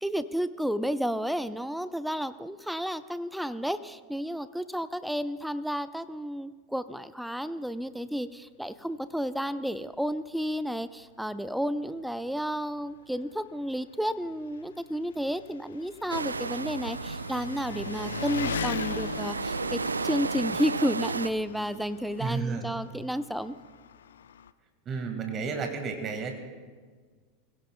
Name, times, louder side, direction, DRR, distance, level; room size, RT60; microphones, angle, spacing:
voice 1, 0.0-23.6, equal, ahead, 14 dB, 0.4 m, -32 dB
Engine, 9.9-10.0 10.4-10.5 11.5-11.6 11.8-24.5, left 8 dB, 70° left, 0.4 m, -41 dB
sound 1, 16.1-21.3, right 4 dB, 80° right, 0.3 m, -33 dB
voice 2, 22.2-22.7 24.8-26.3, right 5 dB, 30° right, 5 dB, 1.7 m, -32 dB
21.5 x 16.5 x 2.2 m, 1.5 s
figure-of-eight pair, 85°, 0 cm